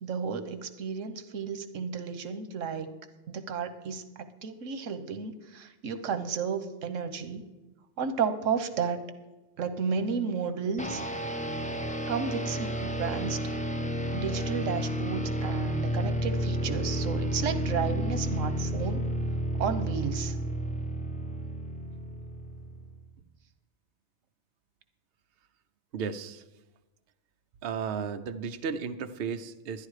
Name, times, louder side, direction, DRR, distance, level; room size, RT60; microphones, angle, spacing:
voice 1, 0.0-2.9 3.3-7.5 8.0-9.0 9.6-11.0 12.1-13.4 14.1-19.0 19.6-20.3, right 6 dB, 90° right, 10 dB, 1.2 m, -32 dB
sound 1, 10.8-23.0, equal, 10° left, 0.5 m, -31 dB
voice 2, 25.9-26.4 27.6-29.9, right 6 dB, 60° right, 9 dB, 0.8 m, -34 dB
11.5 x 10.5 x 4.8 m, 1.1 s
omnidirectional pair, 1.3 m